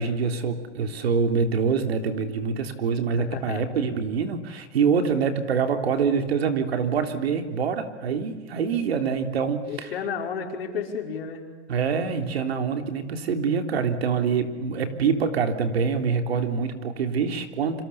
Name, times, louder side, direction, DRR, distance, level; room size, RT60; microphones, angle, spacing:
voice 1, 0.0-9.9 11.7-17.8, right 6 dB, 60° right, 7 dB, 3.6 m, -25 dB
voice 2, 3.2-3.6 9.7-11.5, left 6 dB, 55° left, 3 dB, 5.4 m, -32 dB
28.5 x 26.5 x 7.2 m, 1.3 s
hypercardioid pair, 175°, 35 cm